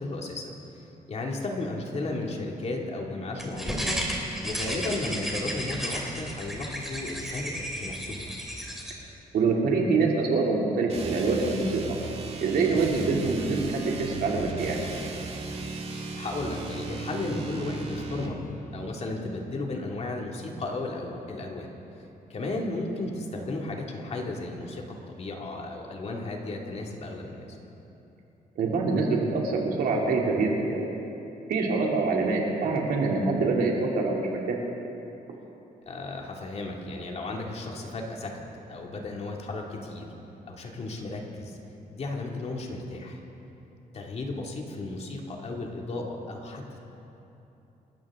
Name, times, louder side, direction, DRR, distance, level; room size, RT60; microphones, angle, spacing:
voice 1, 0.0-8.3 16.1-18.4 18.7-21.7 22.3-27.4 35.9-38.3 38.7-40.0 40.5-41.6 41.9-43.2 43.9-46.8, left 2 dB, 45° left, 0 dB, 2.3 m, -34 dB
sound 1, 3.4-8.9, equal, ahead, 2.7 m, -33 dB
voice 2, 9.3-12.0 12.4-14.8 28.6-30.9 31.5-34.6, right 3 dB, 80° right, -1 dB, 2.8 m, -25 dB
sound 2, 10.9-18.4, right 3 dB, 40° right, 1.7 m, -36 dB
28.0 x 13.5 x 3.7 m, 3.0 s
cardioid pair, 130°, 15 cm